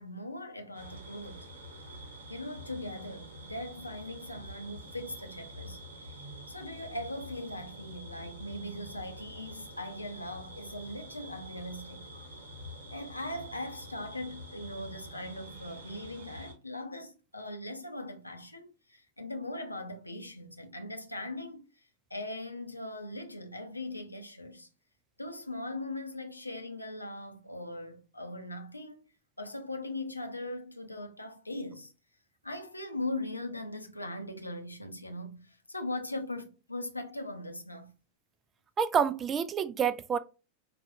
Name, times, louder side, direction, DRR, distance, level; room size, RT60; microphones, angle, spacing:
voice 1, 0.0-1.5 2.3-6.2 6.5-12.1 12.9-21.7 22.1-24.7 25.2-29.1 29.4-31.9 32.4-37.9, left 1 dB, 85° left, 0.6 m, -40 dB
sound 1, 0.7-16.5, equal, 60° right, 1.0 m, -47 dB
voice 2, 38.8-40.2, right 7 dB, 25° right, 0.3 m, -28 dB
4.9 x 2.3 x 2.6 m
figure-of-eight pair, 90°, 0 cm